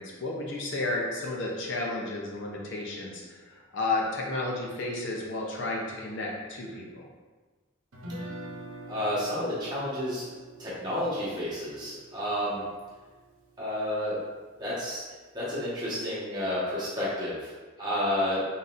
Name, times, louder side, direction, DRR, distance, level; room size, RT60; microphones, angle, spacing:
voice 1, 0.0-7.1, left 2 dB, 60° left, -2 dB, 0.7 m, -32 dB
Guitar, 7.9-14.0, right 1 dB, 80° right, 0.8 m, -45 dB
voice 2, 8.9-10.3 10.6-12.6 13.6-14.2 14.6-15.0 15.3-17.5 17.8-18.4, left 1 dB, 20° right, -9 dB, 1.2 m, -30 dB
4.0 x 4.0 x 2.5 m, 1.3 s
head